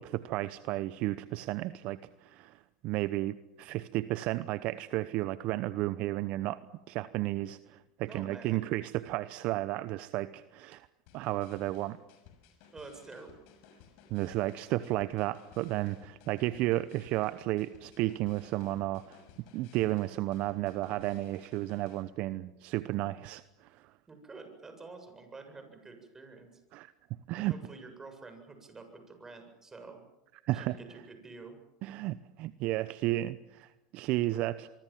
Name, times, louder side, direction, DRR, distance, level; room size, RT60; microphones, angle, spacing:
voice 1, 0.0-6.6 6.9-10.9 11.1-12.0 14.1-19.2 19.5-23.7 26.7-26.9 27.3-27.5 30.4-30.8 31.8-34.7, right 17 dB, 55° right, 15 dB, 0.9 m, -33 dB
voice 2, 8.1-8.6 12.7-13.4 24.1-26.6 27.4-30.0 30.5-31.6, right 3 dB, 20° right, 6 dB, 7.8 m, -48 dB
sound 1, 11.1-22.0, left 7 dB, 60° left, 6.5 m, -59 dB
25.0 x 24.0 x 7.5 m, 0.97 s
hypercardioid pair, 85°, 2 cm